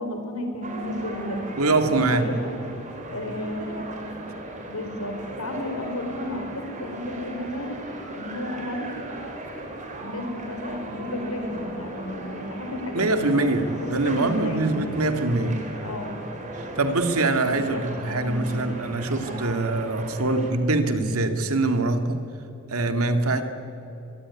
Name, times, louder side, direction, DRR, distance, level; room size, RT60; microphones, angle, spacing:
voice 1, 0.0-1.4 1.8-2.5 3.1-4.2 4.7-7.7 8.1-9.0 10.0-13.5 14.1-14.8 15.0-15.5 15.8-16.1 17.5-18.7, left 1 dB, 85° left, 5 dB, 4.8 m, -33 dB
sound 1, 0.6-20.5, right 1 dB, 35° right, 4.0 m, -37 dB
voice 2, 1.6-2.3 12.9-15.6 16.6-22.2 22.7-23.4, right 2 dB, 90° right, 7 dB, 2.3 m, -23 dB
24.0 x 23.0 x 9.8 m, 2.8 s
head